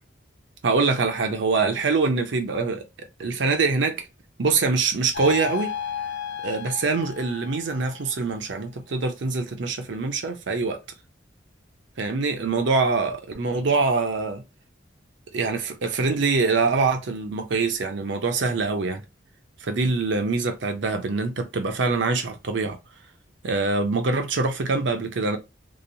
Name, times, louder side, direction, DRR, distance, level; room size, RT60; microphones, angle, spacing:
voice 1, 0.6-2.8 3.2-4.1 4.4-5.7 6.4-10.8 12.0-14.4 15.3-19.0 19.6-22.8 23.4-25.4, right 4 dB, 70° right, 0.5 m, -24 dB
sound 1, 5.1-8.3, left 8 dB, 60° left, 0.4 m, -33 dB
2.9 x 2.0 x 2.6 m
head